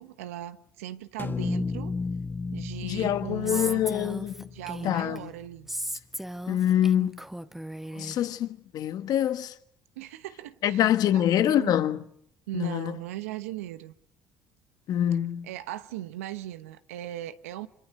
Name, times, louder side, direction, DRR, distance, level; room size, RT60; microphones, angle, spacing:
voice 1, 0.0-1.9 2.5-3.9 4.5-5.7 10.0-11.8 12.5-13.9 15.4-17.7, right 13 dB, 85° right, 1.1 m, -38 dB
sound 1, 1.2-5.4, left 4 dB, 25° left, 1.0 m, -34 dB
voice 2, 2.8-4.5 4.8-5.3 6.5-7.2 8.0-9.5 10.6-12.0 12.5-12.9 14.9-15.5, left 11 dB, 60° left, 1.5 m, -25 dB
Female speech woman speaking, 3.5-5.2 5.7-8.2, right 1 dB, 5° right, 1.5 m, -36 dB
29.5 x 26.0 x 6.7 m
hypercardioid pair, 65°, 7 cm